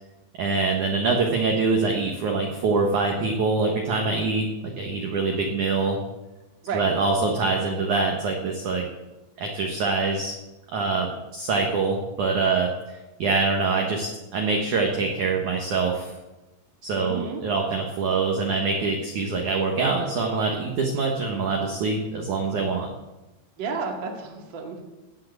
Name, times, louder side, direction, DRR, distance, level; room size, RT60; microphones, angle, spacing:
voice 1, 0.4-4.5 4.8-6.0 6.7-8.8 9.4-10.3 10.7-12.7 13.2-16.1 16.8-22.9, right 4 dB, 65° right, 1 dB, 2.0 m, -24 dB
voice 2, 16.9-17.4 23.6-24.8, right 4 dB, 40° right, 1 dB, 1.9 m, -31 dB
18.0 x 6.6 x 7.9 m, 1.1 s
omnidirectional pair, 5.3 m